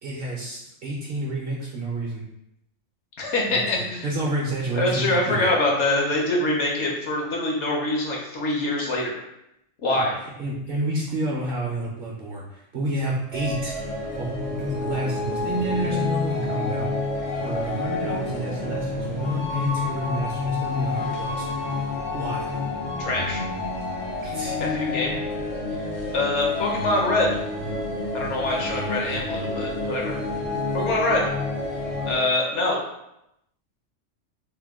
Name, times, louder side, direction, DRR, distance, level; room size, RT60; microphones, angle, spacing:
voice 1, 0.0-2.2 3.5-5.5 9.9-10.1 10.4-13.7 14.2-16.9 17.4-21.7 22.1-22.5 24.2-24.6, right 2 dB, 60° right, -3 dB, 0.6 m, -30 dB
voice 2, 3.2-4.1 4.8-9.2 9.8-10.2 23.0-23.4 24.6-25.2 26.1-27.3 28.1-30.2 30.7-31.2 32.0-32.8, left 2 dB, 65° left, -2 dB, 1.0 m, -24 dB
sound 1, 13.3-32.2, left 3 dB, 50° left, 0.6 m, -29 dB
2.8 x 2.1 x 3.4 m, 0.83 s
omnidirectional pair, 1.3 m